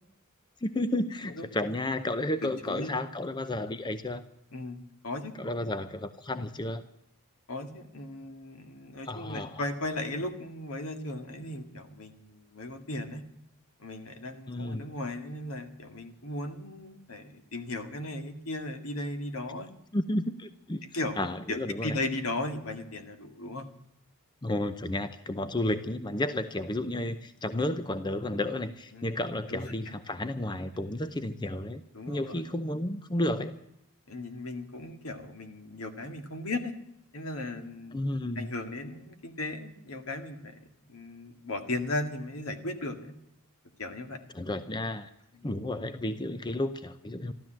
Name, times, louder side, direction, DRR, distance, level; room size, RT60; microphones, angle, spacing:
voice 1, 0.6-4.2 5.4-6.8 9.1-9.6 14.5-14.8 19.9-20.8 21.2-22.0 24.4-31.8 32.1-33.5 37.9-38.5 44.3-45.1 45.4-47.3, left 1 dB, 20° left, 11 dB, 0.6 m, -32 dB
voice 2, 2.4-2.9 4.5-5.3 5.6-5.7 7.5-13.2 13.8-19.7 20.9-23.7 28.9-29.1 29.5-29.9 31.9-32.4 34.1-36.7 37.1-38.0 38.4-43.1 43.8-44.2 45.4-45.5, left 2 dB, 75° left, 7 dB, 2.0 m, -36 dB
14.0 x 13.0 x 7.5 m, 0.80 s
head